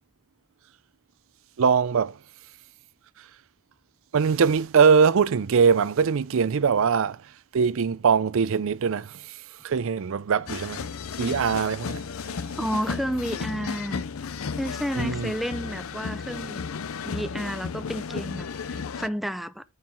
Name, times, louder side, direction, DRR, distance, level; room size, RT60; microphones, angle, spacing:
voice 1, 1.6-2.2 3.2-3.3 4.1-10.9 11.2-12.0 12.3-12.4 15.0-15.3, right 6 dB, 65° right, 0.4 m, -22 dB
sound 1, 10.5-19.1, left 5 dB, 70° left, 0.6 m, -34 dB
voice 2, 12.6-14.0 14.6-16.6 17.0-19.6, equal, ahead, 0.6 m, -31 dB
9.3 x 4.7 x 5.9 m
head